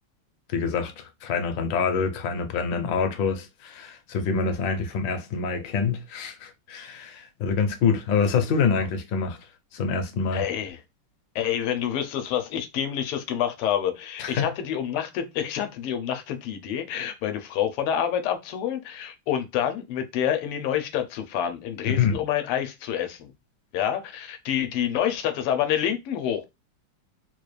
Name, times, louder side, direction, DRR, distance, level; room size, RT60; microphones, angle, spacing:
voice 1, 0.5-9.4 9.7-10.4 14.2-14.5 21.8-22.2, left 5 dB, 70° left, 1.3 m, -26 dB
voice 2, 10.3-10.8 11.3-23.3 23.7-26.5, left 9 dB, 85° left, 1.6 m, -27 dB
4.2 x 2.4 x 3.1 m
omnidirectional pair, 2.4 m